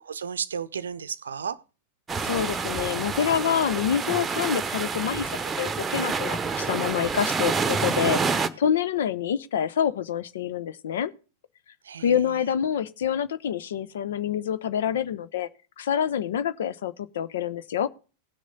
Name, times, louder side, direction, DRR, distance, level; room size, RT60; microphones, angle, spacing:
voice 1, 0.0-1.6 11.8-12.5, right 7 dB, 70° right, 0.6 m, -34 dB
sound 1, 2.1-8.5, right 5 dB, 15° right, 1.0 m, -28 dB
voice 2, 2.2-11.1 12.0-15.5 15.8-17.9, left 9 dB, 60° left, 0.8 m, -27 dB
18.0 x 6.4 x 3.9 m
figure-of-eight pair, 90°, 0 cm